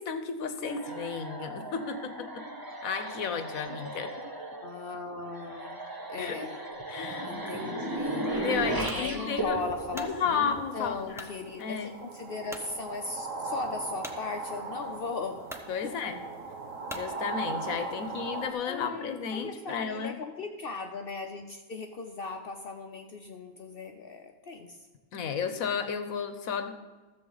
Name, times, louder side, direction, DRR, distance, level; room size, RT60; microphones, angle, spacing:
voice 1, 0.0-2.4 2.8-4.1 6.2-6.4 6.9-7.5 8.1-9.6 9.9-11.3 11.6-11.9 15.7-16.2 16.9-20.2 25.1-26.8, left 6 dB, 85° left, 9 dB, 1.3 m, -33 dB
sound 1, 0.6-10.9, right 2 dB, 20° right, 0.8 m, -36 dB
voice 2, 4.6-6.6 7.2-8.4 8.9-15.5 15.8-16.0 18.6-19.1 19.3-24.9, left 4 dB, 55° left, 5 dB, 0.7 m, -38 dB
sound 2, 8.9-9.1 9.7-10.2 11.1-11.4 11.9-12.0 12.5-12.7 14.0-14.2 15.0-15.1 15.4-15.7 16.9-17.1, equal, 5° right, 0.5 m, -42 dB
sound 3, 9.6-18.5, right 3 dB, 70° right, 1.4 m, -39 dB
13.5 x 7.4 x 3.9 m, 1.3 s
omnidirectional pair, 1.4 m